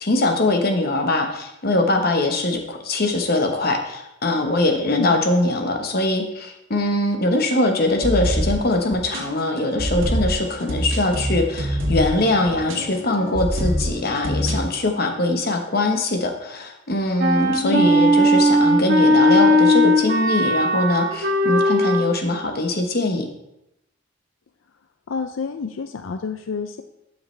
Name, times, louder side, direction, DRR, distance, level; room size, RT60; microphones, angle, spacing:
voice 1, 0.0-23.3, left 2 dB, 50° left, 4 dB, 1.1 m, -22 dB
voice 2, 4.9-5.2 17.6-17.9 25.1-26.8, left 5 dB, 80° left, 8 dB, 0.5 m, -27 dB
sound 1, 7.9-14.6, equal, 80° right, 1.6 m, -26 dB
Wind instrument woodwind instrument, 17.2-22.1, equal, 45° right, 1.1 m, -17 dB
12.0 x 5.7 x 3.3 m, 0.86 s
head